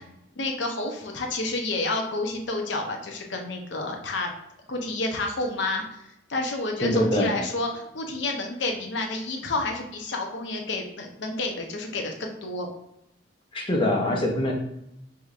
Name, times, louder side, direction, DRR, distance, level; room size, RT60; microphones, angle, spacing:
voice 1, 0.4-4.3 4.7-6.0 6.3-12.7, left 2 dB, 65° left, 2 dB, 0.7 m, -29 dB
voice 2, 6.8-7.3 13.5-14.5, left 1 dB, 25° left, 0 dB, 0.7 m, -23 dB
4.9 x 2.8 x 2.4 m, 0.80 s
head